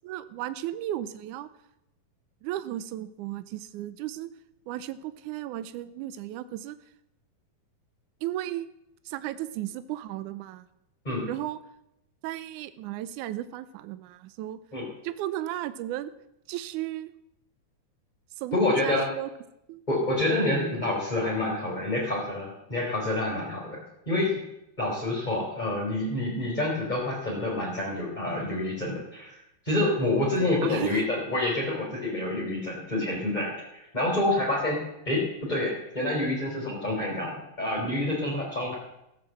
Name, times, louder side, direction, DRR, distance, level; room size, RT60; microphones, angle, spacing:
voice 1, 0.0-1.5 2.4-4.3 4.7-6.7 8.2-8.7 9.0-10.6 11.3-11.6 12.2-14.6 15.0-16.1 16.5-17.1 18.4-19.3 19.7-19.8 30.4-31.0, right 13 dB, 85° right, 13 dB, 1.8 m, -35 dB
voice 2, 18.5-19.1 19.9-24.4 24.8-29.4 29.6-34.8 35.0-35.2 35.5-38.7, left 2 dB, 10° left, -4 dB, 3.2 m, -28 dB
16.0 x 7.5 x 7.5 m, 0.85 s
omnidirectional pair, 4.1 m